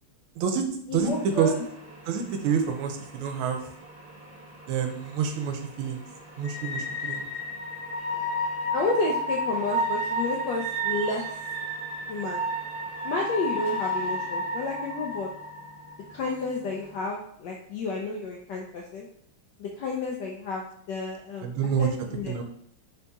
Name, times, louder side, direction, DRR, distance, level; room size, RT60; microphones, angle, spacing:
voice 1, 0.9-1.7 8.7-11.2 12.1-12.4 13.0-15.3 16.1-19.1 19.6-22.4, left 3 dB, 80° left, 0 dB, 0.9 m, -31 dB
sound 1, 1.0-17.0, equal, 30° left, 1.4 m, -33 dB
voice 2, 2.1-3.6 4.7-6.0 6.4-7.2 21.4-21.9 22.3-22.4, right 7 dB, 80° right, 5 dB, 1.4 m, -27 dB
3.9 x 2.8 x 3.4 m, 0.66 s
omnidirectional pair, 2.4 m